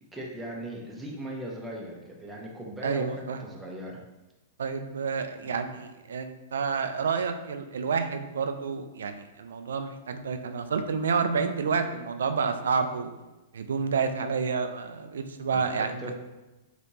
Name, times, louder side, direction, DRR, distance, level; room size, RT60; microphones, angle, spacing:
voice 1, 0.1-4.0 5.4-5.5 15.5-16.1, right 1 dB, 10° right, -2 dB, 0.8 m, -38 dB
voice 2, 2.8-3.4 4.6-13.1 13.5-16.1, right 5 dB, 75° right, 8 dB, 0.3 m, -29 dB
3.3 x 2.9 x 2.7 m, 1.1 s
hypercardioid pair, 105°, 0 cm